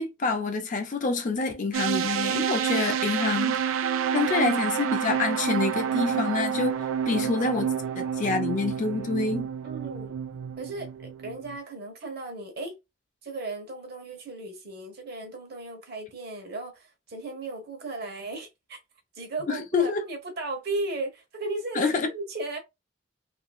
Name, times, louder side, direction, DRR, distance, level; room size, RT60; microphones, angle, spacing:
voice 1, 0.0-3.7 4.1-6.8 7.1-9.5 19.5-20.0 21.7-22.1, left 4 dB, 40° left, 0.4 m, -27 dB
sound 1, 1.7-11.6, right 8 dB, 85° right, 0.3 m, -29 dB
sound 2, 3.3-9.1, right 2 dB, 10° right, 0.5 m, -49 dB
voice 2, 7.1-7.5 9.6-10.2 10.6-12.8 13.2-18.8 19.1-21.8 22.1-22.6, right 2 dB, 55° right, 1.0 m, -36 dB
2.8 x 2.6 x 2.3 m
head